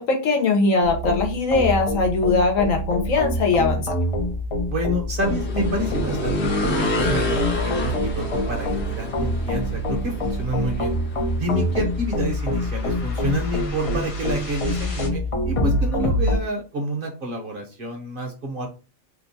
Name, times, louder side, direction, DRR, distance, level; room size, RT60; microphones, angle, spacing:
voice 1, 0.0-3.9, left 3 dB, 80° left, 3 dB, 1.3 m, -21 dB
sound 1, 0.8-16.4, left 1 dB, 45° left, 0.4 m, -25 dB
voice 2, 4.7-11.0 11.4-18.7, right 1 dB, 50° right, 2 dB, 0.8 m, -29 dB
sound 2, 5.2-14.9, left 1 dB, 60° left, 1.1 m, -30 dB
2.8 x 2.2 x 4.0 m, 0.33 s
omnidirectional pair, 1.4 m